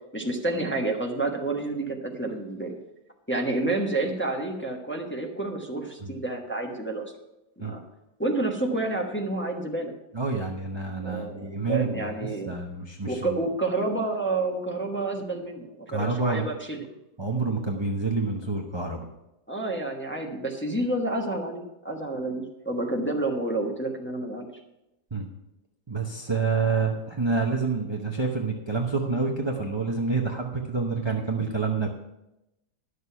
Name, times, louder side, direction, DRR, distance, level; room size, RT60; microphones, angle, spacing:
voice 1, 0.1-2.7 3.3-7.0 7.6-7.8 8.2-9.9 11.0-12.5 13.1-16.8 19.5-24.5, right 2 dB, 10° left, 0 dB, 0.9 m, -29 dB
voice 2, 10.1-12.1 12.5-13.4 15.9-16.5 17.2-19.0 25.1-25.3 25.9-31.9, right 4 dB, 30° right, 1 dB, 0.5 m, -28 dB
11.0 x 6.7 x 5.7 m, 0.92 s
omnidirectional pair, 1.8 m